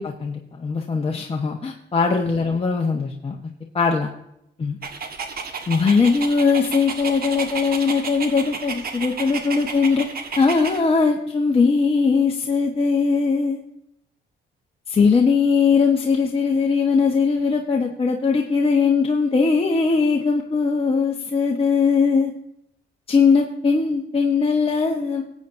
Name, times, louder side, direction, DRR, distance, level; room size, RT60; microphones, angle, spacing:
voice 1, 0.0-3.4 3.7-4.1 4.6-4.8 5.7-10.1 10.4-13.6 14.9-22.3 23.1-25.2, left 5 dB, 30° left, 0 dB, 1.1 m, -20 dB
Dog, 4.8-10.8, right 5 dB, 50° right, 1.5 m, -32 dB
18.5 x 8.5 x 2.7 m, 0.77 s
cardioid pair, 90°, 20 cm